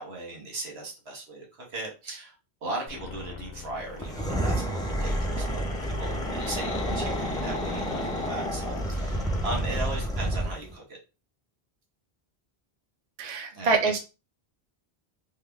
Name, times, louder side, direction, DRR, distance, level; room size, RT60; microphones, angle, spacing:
voice 1, 0.0-2.3 2.6-5.6 6.0-11.0 13.5-13.9, right 2 dB, 80° right, 0 dB, 1.4 m, -37 dB
sound 1, 2.9-10.1, left 6 dB, 65° left, 0.9 m, -41 dB
sound 2, 3.9-10.7, right 1 dB, 5° left, 0.4 m, -29 dB
voice 2, 13.2-14.0, right 4 dB, 45° right, 2 dB, 0.7 m, -25 dB
3.5 x 2.1 x 3.3 m, 0.30 s
omnidirectional pair, 1.0 m